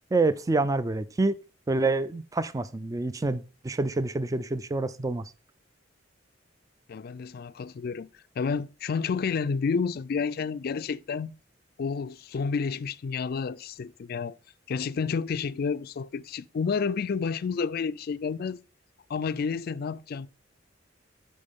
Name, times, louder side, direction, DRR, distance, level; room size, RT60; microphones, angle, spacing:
voice 1, 0.1-1.4 1.7-5.2, right 3 dB, 20° right, 0.3 m, -27 dB
voice 2, 6.9-8.1 8.4-11.3 11.8-14.4 14.7-18.6 19.1-20.3, left 5 dB, 55° left, 0.4 m, -30 dB
12.0 x 4.5 x 3.6 m
head